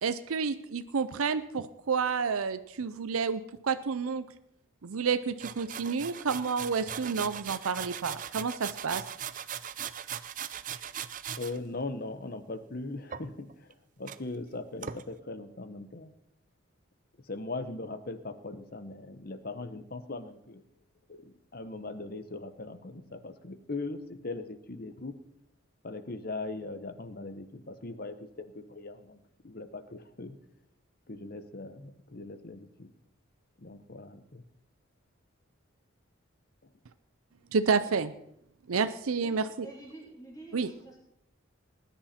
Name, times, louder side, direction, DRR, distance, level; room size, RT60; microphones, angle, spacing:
voice 1, 0.0-4.2 4.8-9.0 37.5-38.1 38.7-39.5 40.5-40.7, right 5 dB, 90° right, 11 dB, 0.6 m, -30 dB
sound 1, 5.4-11.6 13.1-13.7 14.1-14.2 14.8-15.0, right 9 dB, 40° right, 0.5 m, -39 dB
voice 2, 11.4-16.1 17.3-20.6 21.1-25.1 25.8-30.4 31.1-32.9 33.6-34.4 36.6-36.7, left 2 dB, 45° left, 11 dB, 0.9 m, -40 dB
voice 3, 39.2-41.0, right 2 dB, 15° left, -4 dB, 4.5 m, -48 dB
19.5 x 10.0 x 4.3 m, 0.77 s
head